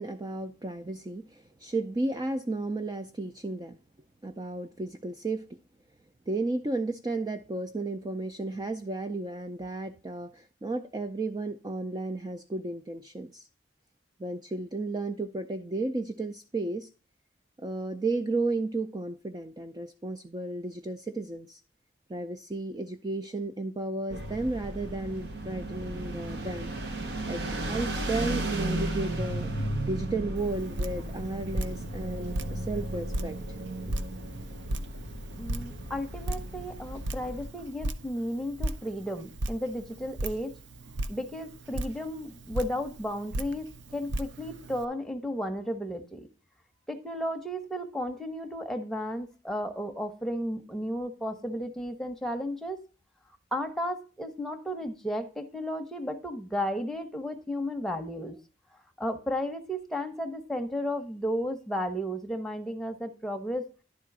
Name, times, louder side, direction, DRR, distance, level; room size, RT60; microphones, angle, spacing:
voice 1, 0.0-3.8 4.2-5.4 6.3-13.5 14.2-16.9 17.6-21.6 22.1-26.7 27.3-29.5 29.9-33.4 33.9-34.0 34.3-34.4, right 2 dB, 20° right, 7 dB, 0.4 m, -33 dB
sound 1, 24.1-37.5, right 1 dB, 65° right, 1.1 m, -35 dB
Drip, 30.4-44.9, right 1 dB, 80° right, 0.6 m, -37 dB
voice 2, 35.4-40.5 41.1-46.3 46.9-52.8 53.5-58.4 59.0-63.7, equal, ahead, 4 dB, 0.8 m, -33 dB
11.0 x 3.7 x 6.0 m, 0.35 s
head